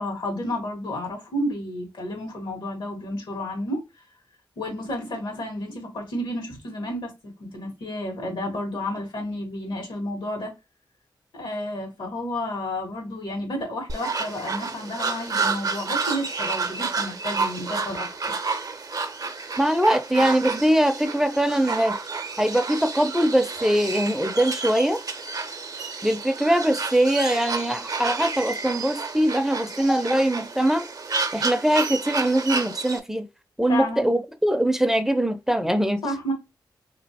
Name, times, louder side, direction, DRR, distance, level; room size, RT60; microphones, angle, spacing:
voice 1, 0.0-3.8 4.6-7.1 7.4-10.5 11.3-18.4 33.7-34.1 36.0-36.3, left 1 dB, 85° left, 1.6 m, -31 dB
sound 1, 13.9-33.0, right 4 dB, 50° right, 0.6 m, -30 dB
voice 2, 19.6-22.0 22.4-25.0 26.0-30.8 31.3-33.3 33.6-36.0, right 1 dB, 5° right, 0.5 m, -22 dB
3.0 x 2.9 x 2.8 m
cardioid pair, 80°, 8 cm